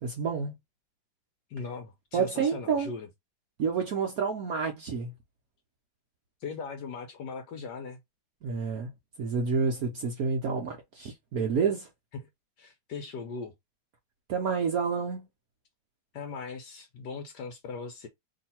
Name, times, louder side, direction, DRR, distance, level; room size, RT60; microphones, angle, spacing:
voice 1, 0.0-0.6 2.1-2.9 3.6-5.1 8.4-8.9 9.2-11.9 14.3-15.3, right 5 dB, 60° right, 1.0 m, -29 dB
voice 2, 1.5-3.1 6.4-8.0 12.1-12.3 12.6-13.5 16.1-18.1, left 4 dB, 65° left, 1.1 m, -39 dB
3.1 x 2.8 x 4.2 m
omnidirectional pair, 2.3 m